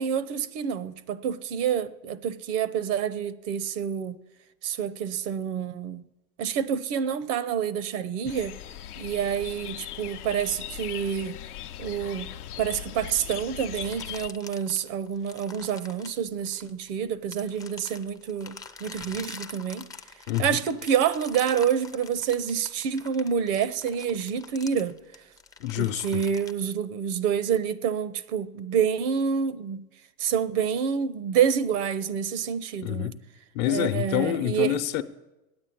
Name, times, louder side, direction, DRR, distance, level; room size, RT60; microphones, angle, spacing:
voice 1, 0.0-4.1 4.6-6.0 6.4-8.6 9.0-11.4 11.8-18.6 18.8-19.9 20.4-25.0 25.8-29.8 30.2-33.1 33.6-34.8, right 8 dB, 55° right, 0.7 m, -28 dB
sound 1, 8.3-14.3, left 12 dB, 85° left, 0.7 m, -39 dB
sound 2, 13.7-16.9 17.3-26.5, left 4 dB, 10° left, 0.5 m, -45 dB
voice 2, 20.3-20.6 25.6-26.2 32.8-33.1 33.5-35.0, left 13 dB, 55° left, 0.9 m, -27 dB
8.8 x 8.8 x 8.6 m
hypercardioid pair, 105°, 44 cm